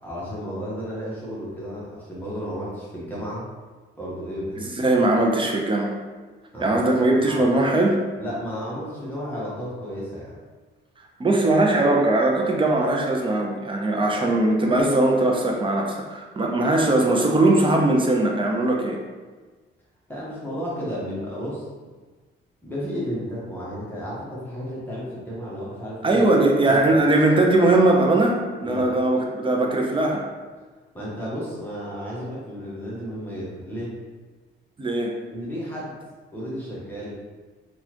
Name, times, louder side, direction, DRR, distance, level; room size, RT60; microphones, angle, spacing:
voice 1, 0.0-3.5 4.0-4.7 6.5-6.8 7.1-7.4 8.2-10.3 20.1-21.7 22.6-26.2 26.7-26.9 28.6-28.8 30.9-34.0 35.3-35.9 36.3-37.2, equal, 10° left, -8 dB, 1.0 m, -33 dB
voice 2, 4.6-5.9 6.6-8.0 11.2-19.0 26.0-30.2 34.8-35.2, right 2 dB, 25° right, 0 dB, 0.6 m, -20 dB
3.9 x 2.4 x 2.9 m, 1.4 s
cardioid pair, 90°, 20 cm